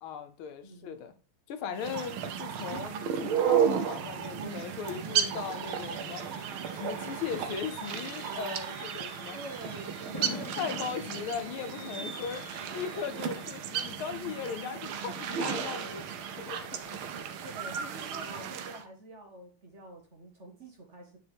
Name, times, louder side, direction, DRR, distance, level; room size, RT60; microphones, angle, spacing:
voice 1, 0.0-1.1 1.5-6.2 6.7-9.4 10.5-16.1 16.4-17.0, left 7 dB, 85° left, 1.7 m, -38 dB
voice 2, 0.6-1.0 1.7-2.0 9.3-11.3 11.8-12.1 17.0-21.2, right 2 dB, 40° right, 1.2 m, -48 dB
sound 1, 1.8-18.8, right 8 dB, 85° right, 1.6 m, -34 dB
Fireworks, 4.7-15.7 16.1-16.4 16.6-16.7, left 1 dB, 10° left, 1.9 m, -47 dB
9.3 x 4.6 x 3.5 m
omnidirectional pair, 2.3 m